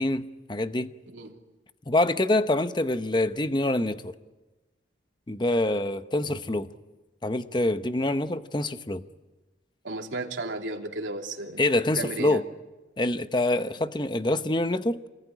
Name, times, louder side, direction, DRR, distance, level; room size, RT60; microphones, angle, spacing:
voice 1, 0.0-0.9 1.9-4.1 5.3-6.7 7.2-9.0 11.6-12.4 13.0-15.0, left 2 dB, 25° left, 0.8 m, -25 dB
voice 2, 1.1-1.4 9.8-12.4, right 2 dB, 90° right, 3.0 m, -34 dB
27.0 x 20.0 x 9.9 m
head